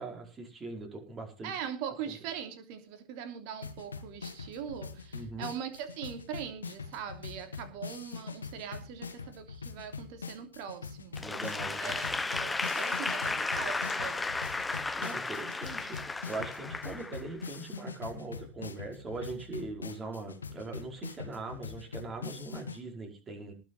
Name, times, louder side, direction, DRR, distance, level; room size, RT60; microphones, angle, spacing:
voice 1, 0.0-1.5 2.0-2.1 5.1-5.5 11.2-12.0 15.0-23.5, right 3 dB, 20° right, 2 dB, 4.9 m, -41 dB
voice 2, 1.4-11.2 11.8-14.3, right 8 dB, 45° right, 8 dB, 3.1 m, -41 dB
sound 1, 3.6-22.8, left 5 dB, 75° left, 1.5 m, -43 dB
Applause / Crowd, 11.2-17.5, left 3 dB, 10° left, 0.8 m, -34 dB
19.5 x 6.7 x 5.6 m, 0.33 s
figure-of-eight pair, 90°, 0 cm